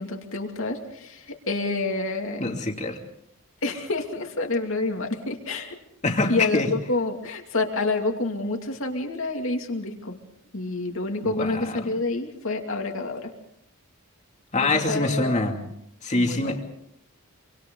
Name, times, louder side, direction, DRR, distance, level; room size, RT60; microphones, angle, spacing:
voice 1, 0.0-2.5 3.6-5.8 6.3-10.2 10.5-13.3 14.9-15.3 16.1-16.6, left 2 dB, 65° left, 3 dB, 2.6 m, -28 dB
voice 2, 2.4-3.0 6.0-6.7 11.2-11.9 14.5-15.6 16.0-16.6, left 2 dB, 35° left, 2 dB, 2.7 m, -25 dB
26.5 x 25.0 x 3.9 m, 0.72 s
head